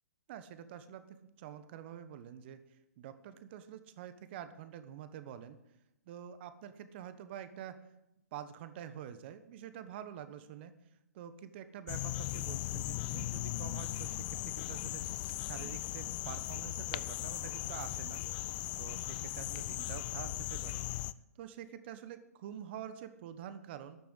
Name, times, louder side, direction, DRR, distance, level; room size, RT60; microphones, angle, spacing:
voice 1, 0.3-2.6 3.0-5.6 6.1-7.8 8.3-10.7 11.1-15.0 15.4-18.2 18.8-20.8 21.4-24.0, right 10 dB, 40° right, 11 dB, 1.1 m, -47 dB
sound 1, 11.9-21.1, left 17 dB, 30° left, 0.4 m, -38 dB
12.0 x 6.8 x 8.1 m, 0.86 s
hypercardioid pair, 135°, 9 cm